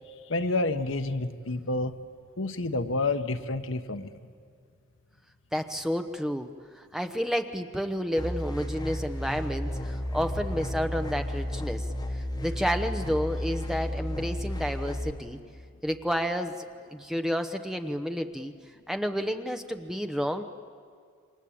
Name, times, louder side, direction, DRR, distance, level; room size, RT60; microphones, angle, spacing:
voice 1, 0.3-1.9 2.4-4.1, left 2 dB, 75° left, 9 dB, 1.1 m, -29 dB
voice 2, 5.5-6.5 6.8-11.8 12.4-15.4 15.8-16.6 16.9-18.5 18.9-20.4, equal, ahead, 6 dB, 0.9 m, -30 dB
sound 1, 8.1-15.1, equal, 20° left, 2.1 m, -33 dB
28.5 x 24.5 x 8.6 m, 2.2 s
head